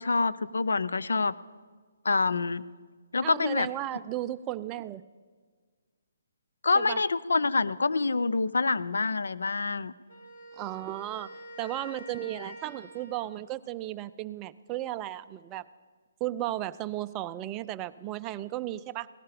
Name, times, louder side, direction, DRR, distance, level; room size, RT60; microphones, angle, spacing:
voice 1, 0.0-1.3 2.0-2.6 3.1-3.7 6.6-9.9, left 3 dB, 90° left, 16 dB, 0.5 m, -26 dB
voice 2, 3.2-5.0 6.8-7.0 10.5-11.3 11.6-15.6 16.2-19.1, right 14 dB, 20° right, 12 dB, 0.4 m, -35 dB
Wind instrument woodwind instrument, 10.1-13.4, equal, 55° left, 5.5 m, -47 dB
17.0 x 12.0 x 5.0 m, 1.5 s
hypercardioid pair, 160°, 0 cm